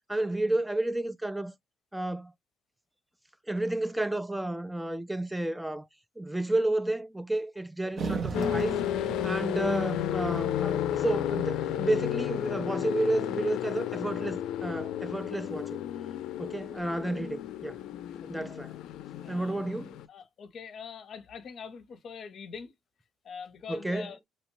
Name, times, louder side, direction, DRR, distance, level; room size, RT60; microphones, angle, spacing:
voice 1, 0.1-1.5 1.9-2.3 3.5-5.9 6.2-8.8 9.2-15.7 16.4-17.8 18.3-18.7 19.3-19.9 23.7-24.1, right 1 dB, 5° right, 0.3 m, -31 dB
sound 1, 8.0-12.5, right 4 dB, 45° right, 0.8 m, -39 dB
sound 2, 8.3-20.1, left 11 dB, 80° left, 0.4 m, -32 dB
voice 2, 19.2-19.6 20.1-22.7 23.2-24.2, left 6 dB, 50° left, 0.7 m, -43 dB
2.8 x 2.2 x 3.0 m
cardioid pair, 135°, 0 cm